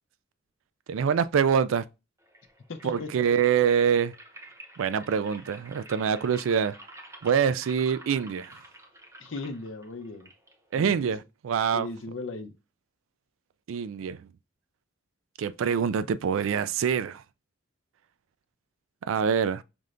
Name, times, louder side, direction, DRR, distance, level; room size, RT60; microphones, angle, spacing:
voice 1, 0.9-1.8 2.8-4.1 4.8-6.8 7.2-8.5 10.7-11.9 13.7-14.2 15.4-17.2 19.1-19.6, right 7 dB, 85° right, 0.3 m, -25 dB
sound 1, 2.2-11.2, right 1 dB, 15° right, 0.7 m, -49 dB
voice 2, 2.7-3.1 9.2-10.3 10.7-11.1 11.7-12.5, left 3 dB, 70° left, 0.7 m, -37 dB
5.2 x 3.2 x 2.4 m
head